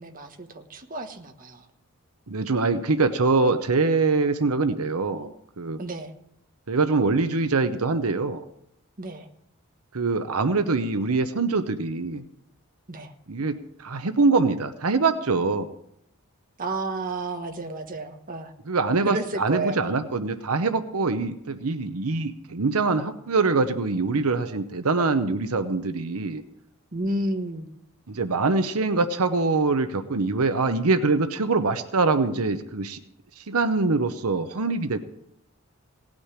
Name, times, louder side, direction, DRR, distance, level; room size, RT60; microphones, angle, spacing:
voice 1, 0.0-1.7 5.8-6.1 9.0-9.3 12.9-13.1 16.6-18.5 19.0-19.8 26.9-27.7, right 2 dB, 40° right, 5 dB, 1.2 m, -31 dB
voice 2, 2.3-5.8 6.7-8.4 9.9-12.2 13.3-15.7 18.7-26.4 28.1-33.0 33.4-35.0, right 3 dB, 80° right, 9 dB, 0.9 m, -24 dB
17.5 x 6.2 x 9.7 m, 0.79 s
head